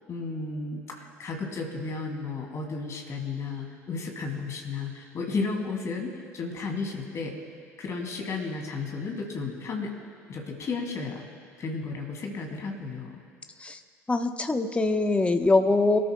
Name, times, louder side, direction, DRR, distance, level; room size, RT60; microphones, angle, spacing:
voice 1, 0.1-7.4 7.8-9.9 10.3-11.2 11.6-13.2, left 4 dB, 40° left, 1 dB, 2.7 m, -33 dB
voice 2, 14.1-16.0, left 3 dB, 15° left, 7 dB, 1.0 m, -23 dB
24.0 x 13.0 x 2.3 m, 2.2 s
figure-of-eight pair, 60°, 8 cm